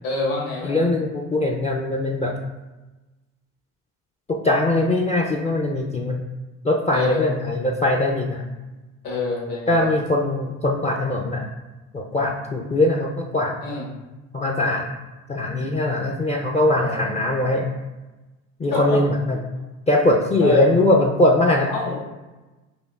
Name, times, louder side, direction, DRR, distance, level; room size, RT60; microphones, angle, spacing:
voice 1, 0.0-0.9 6.9-7.2 9.0-9.9 13.6-13.9 16.8-17.2 18.7-19.0 20.4-20.7 21.7-22.0, left 4 dB, 65° left, -4 dB, 1.4 m, -26 dB
voice 2, 0.6-2.3 4.3-6.2 6.6-8.5 9.7-11.5 11.9-13.5 14.3-14.9 15.3-17.7 18.6-19.4 19.9-21.7, left 1 dB, 20° left, -1 dB, 0.3 m, -21 dB
4.4 x 2.6 x 2.3 m, 1.1 s
hypercardioid pair, 65°, 37 cm